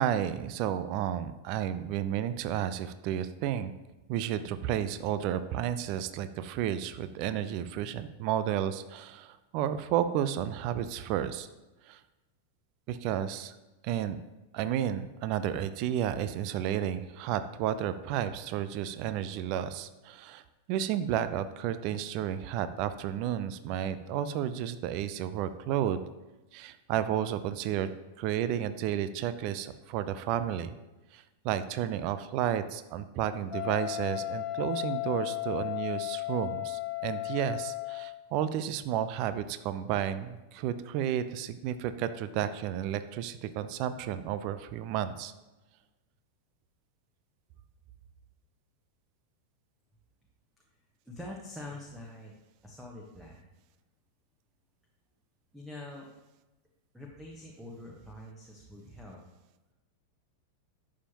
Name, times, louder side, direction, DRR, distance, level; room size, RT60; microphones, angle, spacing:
voice 1, 0.0-3.7 4.1-11.5 11.8-12.0 12.9-13.6 13.8-14.2 14.5-20.4 20.7-26.0 26.5-27.9 28.2-30.7 31.1-45.3, right 10 dB, 45° right, 12 dB, 0.5 m, -32 dB
Wind instrument woodwind instrument, 33.5-38.2, left 18 dB, 20° left, 1.5 m, -35 dB
voice 2, 51.0-52.3 52.6-53.4 55.5-56.1 56.9-59.2, left 1 dB, 5° right, -2 dB, 1.3 m, -45 dB
11.0 x 7.3 x 2.9 m, 1.1 s
figure-of-eight pair, 90°, 0 cm